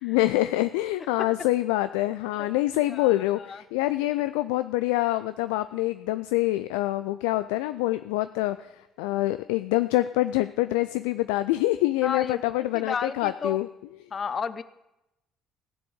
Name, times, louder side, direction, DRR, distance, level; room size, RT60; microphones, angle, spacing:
voice 1, 0.0-8.7 9.0-13.7, left 17 dB, 75° left, 12 dB, 0.3 m, -25 dB
voice 2, 12.0-13.6 14.1-14.6, left 6 dB, 40° left, 15 dB, 0.8 m, -32 dB
15.5 x 7.0 x 8.0 m, 0.93 s
figure-of-eight pair, 50°, 0 cm